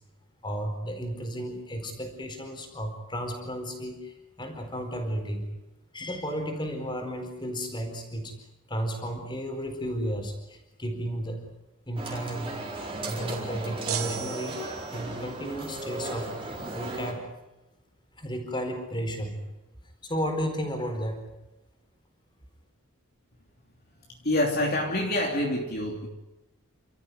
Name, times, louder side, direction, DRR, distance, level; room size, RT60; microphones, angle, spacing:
voice 1, 0.4-5.5 5.9-8.3 8.7-11.4 11.9-12.6 13.0-16.3 16.7-17.3 18.2-19.4 20.0-21.3, equal, 20° left, 4 dB, 4.4 m, -33 dB
sound 1, 12.0-17.1, right 2 dB, 25° right, 4.4 m, -36 dB
sound 2, 13.9-15.2, right 10 dB, 75° right, 2.6 m, -35 dB
voice 2, 24.2-26.1, left 1 dB, 45° left, 0 dB, 3.0 m, -26 dB
29.5 x 14.0 x 9.5 m, 0.99 s
head